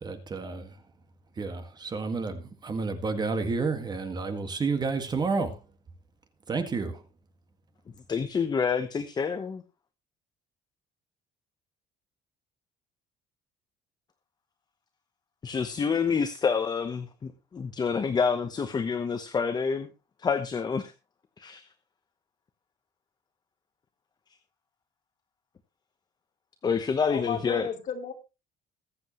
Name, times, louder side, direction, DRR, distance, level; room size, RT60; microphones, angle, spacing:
voice 1, 0.0-0.7 1.4-5.6 6.5-7.0, right 4 dB, 25° right, 1.8 m, -30 dB
voice 2, 8.1-9.6 15.4-19.9 20.2-20.9 21.4-21.6 26.6-27.7, left 5 dB, 25° left, 1.0 m, -28 dB
voice 3, 27.1-28.1, left 6 dB, 45° left, 2.7 m, -33 dB
22.0 x 7.8 x 3.1 m
cardioid pair, 170°, 18 cm